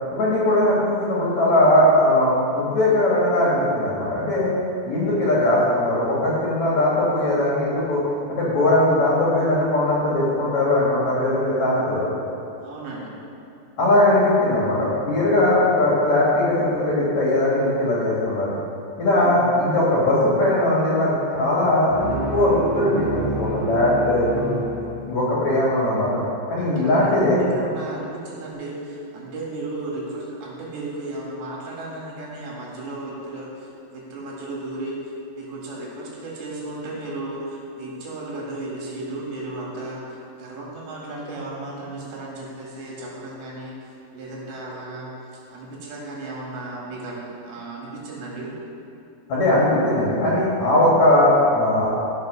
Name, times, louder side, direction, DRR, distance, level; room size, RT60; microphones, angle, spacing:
voice 1, 0.1-4.5 4.8-8.0 8.3-12.1 13.8-18.5 19.0-24.6 25.1-26.2 26.5-27.4 49.3-52.0, left 1 dB, 50° left, -6 dB, 2.5 m, -20 dB
voice 2, 12.6-13.1 19.1-19.5 26.6-45.1 45.5-48.6, right 2 dB, 75° right, -4 dB, 4.2 m, -34 dB
sound 1, 21.9-25.5, right 3 dB, 90° right, 1.1 m, -29 dB
13.5 x 5.9 x 6.2 m, 2.7 s
omnidirectional pair, 5.1 m